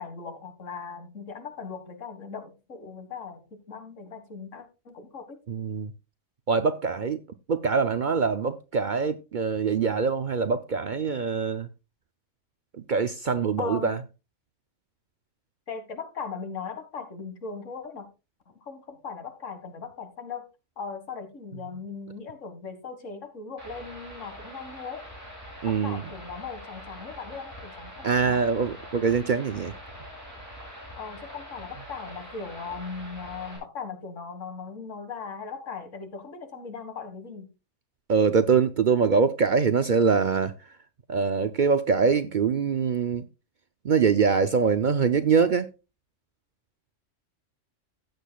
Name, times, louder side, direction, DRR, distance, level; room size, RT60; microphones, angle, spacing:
voice 1, 0.0-5.4 13.6-14.0 15.7-18.1 18.6-20.4 20.8-25.0 25.6-28.5 31.0-37.5, left 5 dB, 75° left, 2.1 m, -39 dB
voice 2, 5.5-5.9 6.5-7.2 7.5-11.7 12.7-14.0 25.6-26.0 28.0-29.7 38.1-40.6 41.1-43.3 43.8-45.7, right 5 dB, 50° right, 0.6 m, -24 dB
sound 1, 23.6-33.6, equal, 10° right, 7.0 m, -44 dB
15.5 x 8.4 x 2.3 m
omnidirectional pair, 1.3 m